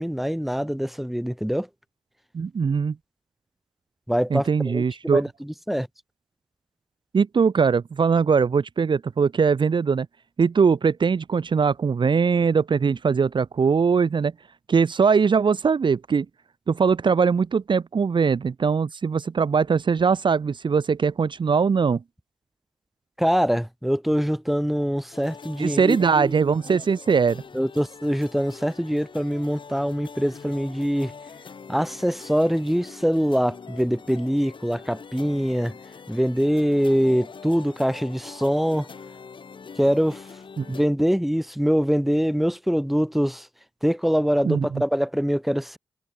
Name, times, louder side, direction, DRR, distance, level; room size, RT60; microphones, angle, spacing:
voice 1, 0.0-1.7 4.1-5.9 23.2-26.4 27.5-31.1 31.7-35.8 36.1-38.9 39.8-40.2 40.7-43.5 43.8-45.8, equal, ahead, 3.4 m, -24 dB
voice 2, 2.3-2.9 4.3-5.2 7.1-10.1 10.4-14.3 14.7-16.2 16.7-22.0 25.6-27.4 40.6-40.7 44.4-44.8, right 5 dB, 55° right, 1.4 m, -21 dB
sound 1, 25.1-40.9, left 5 dB, 60° left, 4.8 m, -44 dB
cardioid pair, 50°, 9 cm